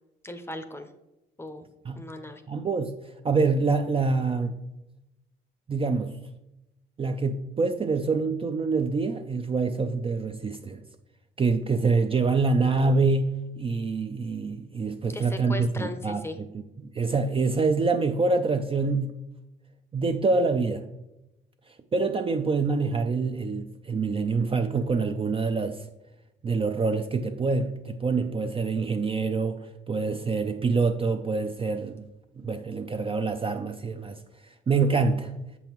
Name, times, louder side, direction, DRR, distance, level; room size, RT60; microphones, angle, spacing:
voice 1, 0.2-0.9 1.4-1.6 1.9-2.4 15.1-16.4, left 2 dB, 10° left, 0.6 m, -37 dB
voice 2, 2.5-2.9 3.2-4.6 5.7-6.1 7.0-10.8 11.4-19.2 19.9-20.8 21.9-25.8 26.4-32.1 32.4-34.2 34.7-35.3, right 4 dB, 30° right, 0.4 m, -26 dB
7.0 x 5.4 x 3.0 m
cardioid pair, 90°, 20 cm